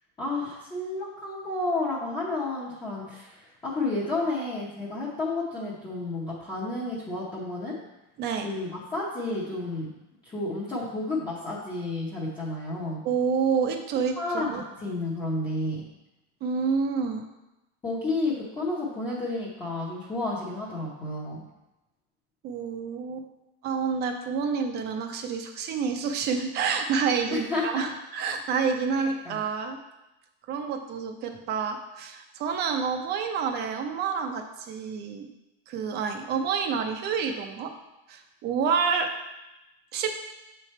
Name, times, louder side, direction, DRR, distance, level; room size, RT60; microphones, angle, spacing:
voice 1, 0.2-7.8 8.4-9.9 10.2-13.0 14.2-15.8 17.8-21.4 27.3-27.9 29.0-29.4, left 2 dB, 15° left, -8 dB, 0.7 m, -31 dB
voice 2, 13.0-14.6 16.4-17.2 22.4-23.3 23.6-29.8 30.5-35.3 35.7-37.7 38.1-39.1 39.9-40.1, right 6 dB, 30° right, 5 dB, 0.5 m, -28 dB
7.5 x 3.3 x 4.2 m, 0.97 s
supercardioid pair, 165°, 34 cm